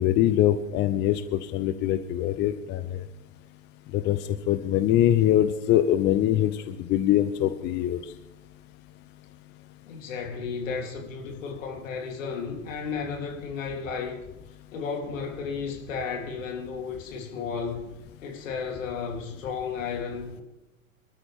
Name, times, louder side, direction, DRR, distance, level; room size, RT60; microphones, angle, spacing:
voice 1, 0.0-3.0 3.9-4.2 4.5-8.0, left 12 dB, 25° left, 0.7 m, -23 dB
voice 2, 9.9-14.2 14.7-17.9 18.2-20.4, left 5 dB, 65° left, 3.4 m, -33 dB
25.0 x 13.0 x 3.6 m
hypercardioid pair, 110°, 41 cm